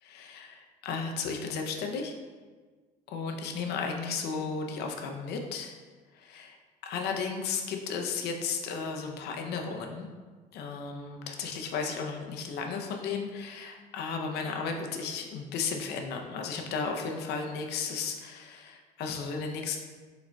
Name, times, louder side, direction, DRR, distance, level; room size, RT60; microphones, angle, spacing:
voice 1, 0.0-2.1 3.1-5.7 6.1-6.6 6.8-10.1 10.5-19.8, left 5 dB, 75° left, 3 dB, 0.6 m, -34 dB
4.8 x 4.1 x 2.2 m, 1.4 s
cardioid pair, 110°, 17 cm